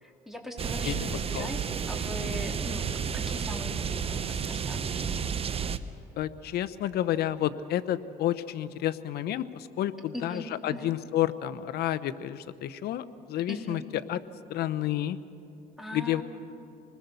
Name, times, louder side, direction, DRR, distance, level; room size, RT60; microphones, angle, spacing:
voice 1, 0.0-5.2 10.1-10.9 13.5-13.9 15.8-16.2, left 1 dB, ahead, 1 dB, 3.0 m, -40 dB
sound 1, 0.6-5.8, right 7 dB, 35° right, 0.8 m, -31 dB
voice 2, 6.2-14.2 14.5-15.2 15.9-16.2, left 12 dB, 70° left, 12 dB, 0.9 m, -30 dB
26.5 x 21.0 x 6.9 m, 2.8 s
cardioid pair, 110°, 17 cm